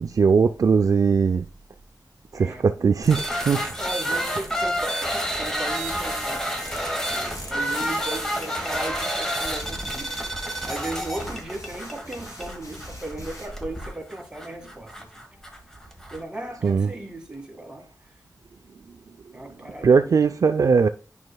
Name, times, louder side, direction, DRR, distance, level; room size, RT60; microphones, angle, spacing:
voice 1, 0.0-1.5 2.3-3.6 16.6-16.9 19.8-20.9, right 5 dB, 60° right, 0.4 m, -19 dB
voice 2, 2.3-2.6 3.8-6.7 7.1-10.4 10.6-14.9 16.1-17.9 19.3-20.1, right 2 dB, 15° right, 1.9 m, -36 dB
sound 1, 3.0-16.2, equal, 10° left, 1.4 m, -30 dB
sound 2, 5.7-13.5, left 1 dB, 55° left, 2.8 m, -44 dB
9.6 x 5.6 x 2.2 m
wide cardioid pair, 120°, 7 cm